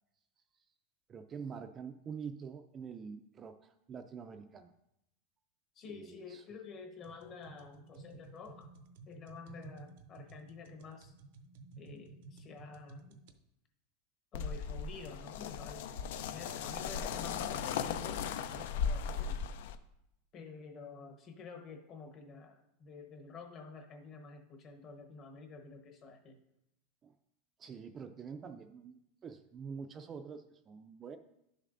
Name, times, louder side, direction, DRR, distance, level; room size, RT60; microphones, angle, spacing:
voice 1, 1.1-4.7 5.9-6.4 27.0-27.1 27.6-31.2, right 6 dB, 25° right, 7 dB, 0.4 m, -46 dB
voice 2, 5.7-8.7 9.1-11.1 11.8-13.2 14.3-19.4 20.3-26.4, left 4 dB, 35° left, 4 dB, 1.0 m, -50 dB
sound 1, 7.0-13.4, right 3 dB, 65° right, 0.6 m, -54 dB
sound 2, 14.3-19.8, left 7 dB, 70° left, 0.4 m, -37 dB
11.0 x 6.6 x 2.5 m, 0.83 s
supercardioid pair, 145°, 0 cm